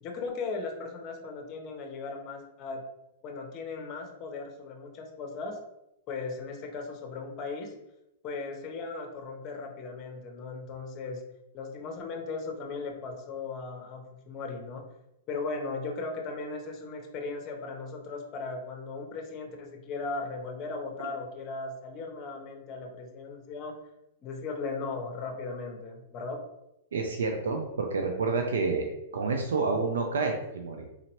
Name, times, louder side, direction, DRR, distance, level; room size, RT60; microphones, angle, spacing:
voice 1, 0.0-2.8 3.2-5.6 6.1-7.7 8.2-11.2 11.5-14.8 15.3-23.7 24.2-26.4, left 4 dB, 35° left, 3 dB, 0.9 m, -37 dB
voice 2, 26.9-28.9 29.1-30.9, right 4 dB, 90° right, 3 dB, 0.5 m, -29 dB
3.9 x 2.8 x 3.0 m, 0.87 s
hypercardioid pair, 135°, 0 cm